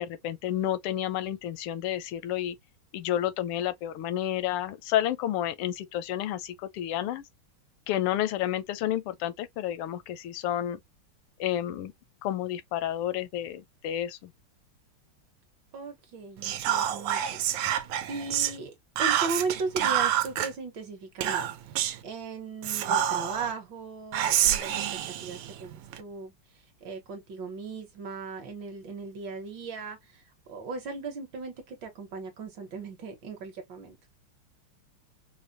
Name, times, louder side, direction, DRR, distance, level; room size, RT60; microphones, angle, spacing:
voice 1, 0.0-2.6 2.9-7.2 7.9-10.8 11.4-11.9 12.2-14.3, left 12 dB, 85° left, 1.5 m, -30 dB
voice 2, 15.7-17.4 18.1-21.5 22.0-26.3 26.8-30.2 30.5-34.0, right 4 dB, 60° right, 1.5 m, -37 dB
Whispering, 16.4-18.6 19.0-20.5 21.2-22.0 22.6-23.5 24.1-26.0, right 10 dB, 85° right, 1.6 m, -27 dB
4.9 x 2.1 x 2.6 m
omnidirectional pair, 2.4 m